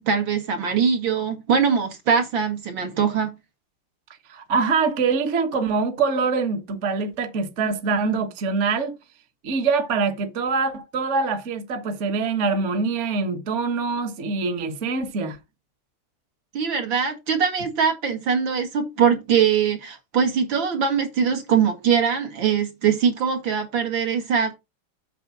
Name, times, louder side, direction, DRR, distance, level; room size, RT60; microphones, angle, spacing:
voice 1, 0.0-3.4 16.5-24.6, right 7 dB, 65° right, 2.6 m, -22 dB
voice 2, 4.3-8.9 9.4-15.4, right 4 dB, 40° right, 1.4 m, -24 dB
8.2 x 4.0 x 7.0 m
omnidirectional pair, 2.4 m